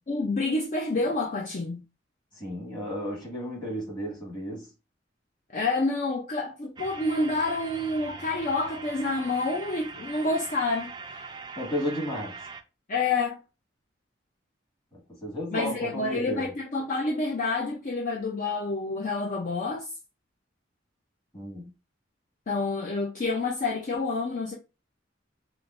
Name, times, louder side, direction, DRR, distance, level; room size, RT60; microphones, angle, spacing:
voice 1, 0.1-1.8 5.5-11.2 12.9-13.4 15.5-19.9 22.5-24.5, left 3 dB, 45° left, 0.5 m, -28 dB
voice 2, 2.3-4.7 11.6-12.4 14.9-16.5 21.3-21.7, equal, 25° left, 1.9 m, -33 dB
sound 1, 6.8-12.6, right 4 dB, 25° right, 0.4 m, -42 dB
4.9 x 2.1 x 2.5 m
head